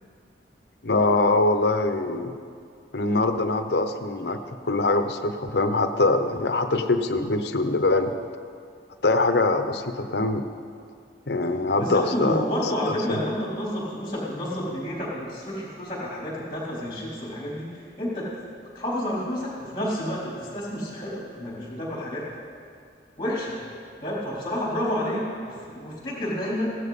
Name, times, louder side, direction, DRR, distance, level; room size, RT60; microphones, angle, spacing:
voice 1, 0.8-2.3 2.9-8.1 9.0-10.5 11.3-12.9, left 2 dB, 65° left, 8 dB, 0.8 m, -23 dB
voice 2, 11.8-17.7 18.0-18.3 18.7-22.2 23.2-23.6 24.0-26.7, equal, 25° left, -6 dB, 3.9 m, -30 dB
16.0 x 12.0 x 4.2 m, 2.3 s
head